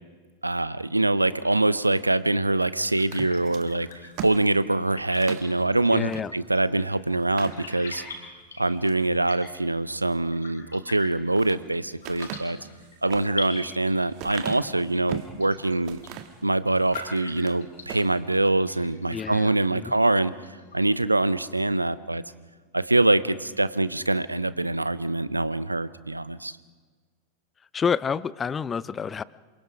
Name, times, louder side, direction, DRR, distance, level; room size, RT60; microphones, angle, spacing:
voice 1, 0.4-3.9 4.2-8.0 8.6-12.6 13.0-16.0 16.4-20.3 20.7-22.2 22.7-26.5, right 2 dB, 85° right, 17 dB, 0.7 m, -24 dB
sound 1, 1.2-21.1, left 3 dB, 70° left, 7.9 m, -45 dB
sound 2, 3.0-5.5 6.1-6.3 6.6-6.7 7.2-8.1 8.6-9.1 10.9-11.6 12.0-15.4 15.9-16.4 16.8-17.6 17.8-18.1, right 11 dB, 45° right, 1.7 m, -39 dB
voice 2, 5.9-6.3 19.1-19.9 27.7-29.2, left 6 dB, 20° left, 20 dB, 0.6 m, -28 dB
28.0 x 24.5 x 5.0 m, 1.5 s
figure-of-eight pair, 90°, 0 cm